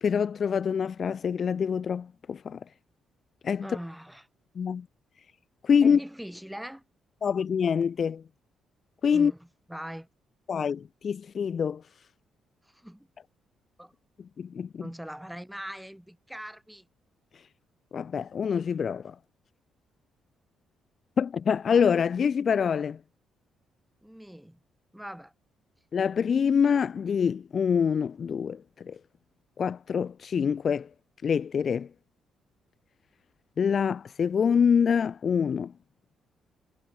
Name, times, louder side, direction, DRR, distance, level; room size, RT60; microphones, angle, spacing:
voice 1, 0.0-2.6 3.4-3.7 4.6-4.9 5.6-6.0 7.2-8.2 9.0-9.3 10.5-11.8 14.4-14.8 17.9-19.2 21.2-23.0 25.9-29.0 29.6-30.9 31.2-31.9 33.6-35.7, left 7 dB, 50° left, 0.3 m, -25 dB
voice 2, 3.6-4.3 5.8-6.8 9.1-10.1 12.6-13.1 13.8-13.9 14.8-16.9 24.0-24.6 24.9-25.3, equal, 5° right, 4.5 m, -41 dB
cardioid pair, 90°, 0 cm